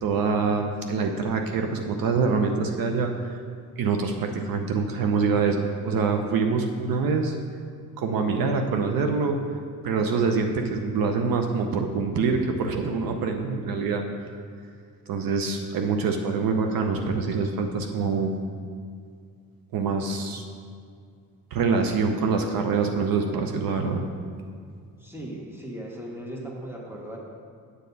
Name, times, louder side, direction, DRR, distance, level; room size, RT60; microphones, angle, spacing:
voice 1, 0.0-3.4 3.8-7.3 8.0-9.4 9.8-14.1 15.1-18.3 19.7-20.4 21.5-24.0, right 4 dB, 65° right, 4 dB, 0.8 m, -25 dB
voice 2, 25.0-27.2, right 1 dB, 5° right, -2 dB, 1.4 m, -37 dB
8.1 x 7.5 x 4.0 m, 2.2 s
cardioid pair, 110°, 37 cm